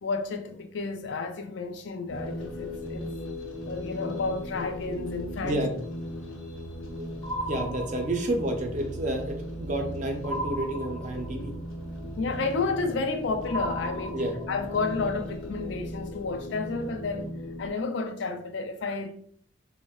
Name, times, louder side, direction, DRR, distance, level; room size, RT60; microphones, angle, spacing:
voice 1, 0.0-3.1 3.7-5.6 12.2-14.2 14.5-19.1, left 4 dB, 65° left, 0.4 m, -31 dB
sound 1, 2.1-17.7, equal, 85° left, 0.8 m, -37 dB
sound 2, 7.2-8.5 10.2-11.5 13.5-14.7, right 1 dB, 10° left, 0.5 m, -35 dB
voice 2, 7.4-11.5 14.1-14.3, right 1 dB, 40° right, 0.4 m, -30 dB
3.4 x 2.0 x 2.2 m
head